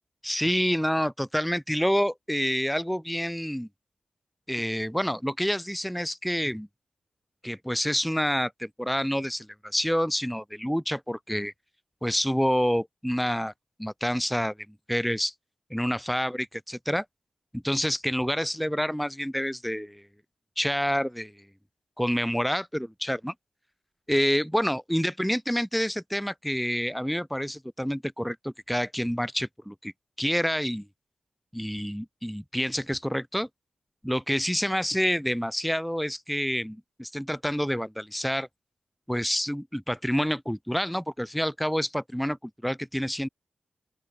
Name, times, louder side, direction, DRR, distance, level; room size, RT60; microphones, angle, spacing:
voice 1, 0.2-3.7 4.5-6.7 7.4-11.5 12.0-13.5 13.8-14.5 14.9-15.3 15.7-17.1 17.5-20.0 20.6-21.3 22.0-23.3 24.1-29.9 30.2-30.9 31.5-33.5 34.0-38.5 39.1-43.3, equal, ahead, 0.3 m, -28 dB
open air
wide cardioid pair, 95°, 3 cm